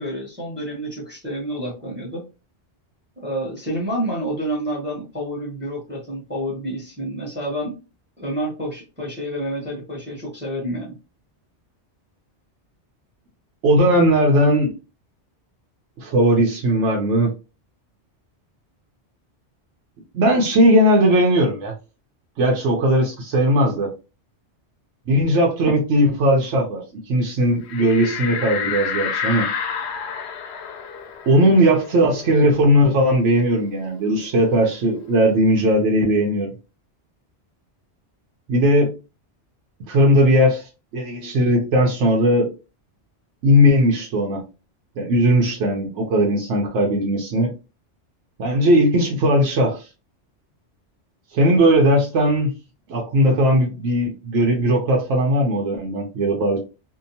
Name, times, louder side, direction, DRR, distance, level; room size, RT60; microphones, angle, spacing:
voice 1, 0.0-2.3 3.2-7.7 8.2-11.0, right 1 dB, 10° right, -2 dB, 0.8 m, -29 dB
voice 2, 13.6-14.7 16.0-17.3 20.1-21.7 22.4-23.9 25.1-29.5 31.3-36.5 38.5-38.9 39.9-42.5 43.4-44.4 45.0-47.5 48.4-49.9 51.3-52.5 52.9-56.6, equal, 85° right, 0 dB, 1.0 m, -18 dB
sound 1, 27.7-32.9 33.2-33.3 33.7-35.3, left 6 dB, 70° left, 0.8 m, -30 dB
2.8 x 2.2 x 2.6 m, 0.30 s
omnidirectional pair, 1.2 m